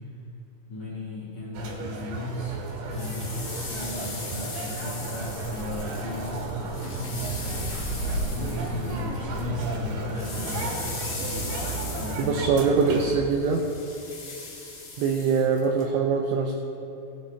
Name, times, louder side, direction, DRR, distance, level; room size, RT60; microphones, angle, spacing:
voice 1, 0.7-2.6 2.9-7.4 8.3-11.0 11.9-12.4, left 1 dB, 85° left, -7 dB, 1.6 m, -35 dB
sound 1, 1.5-13.0, right 2 dB, 70° right, 3.3 m, -34 dB
sound 2, 2.7-9.5 9.7-15.8, left 3 dB, 60° left, 1.7 m, -39 dB
sound 3, 7.1-13.3, right 1 dB, 35° left, 1.5 m, -37 dB
voice 2, 12.2-13.7 15.0-16.6, right 5 dB, 85° right, 1 dB, 2.6 m, -23 dB
17.5 x 8.9 x 3.2 m, 2.9 s
omnidirectional pair, 6.0 m